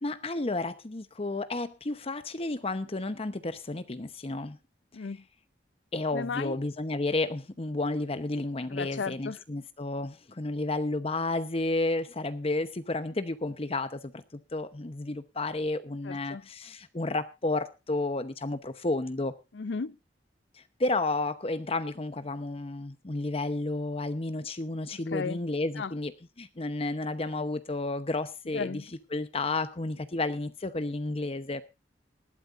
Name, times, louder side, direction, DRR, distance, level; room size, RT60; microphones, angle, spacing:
voice 1, 0.0-4.6 5.9-14.2 14.5-19.3 20.8-26.1 26.4-28.8 29.1-31.6, left 2 dB, 35° left, 0.9 m, -31 dB
voice 2, 4.9-5.2 6.1-6.6 8.7-9.4 16.0-16.4 19.5-20.0 24.9-25.4 25.8-25.9 28.5-28.9, left 5 dB, 80° left, 0.5 m, -35 dB
19.5 x 12.0 x 2.5 m
head